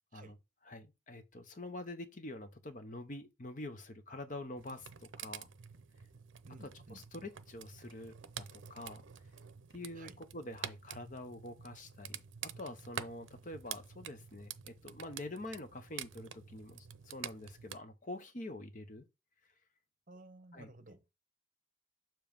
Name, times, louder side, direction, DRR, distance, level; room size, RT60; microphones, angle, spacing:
voice 1, 0.7-5.5 6.9-9.0 9.7-19.1 20.5-20.7, left 1 dB, 40° left, 0.8 m, -46 dB
sound 1, 4.6-17.8, right 9 dB, 90° right, 0.5 m, -48 dB
voice 2, 6.4-7.0 9.9-10.2 20.1-21.0, right 2 dB, 45° right, 0.9 m, -54 dB
7.0 x 3.0 x 5.1 m
head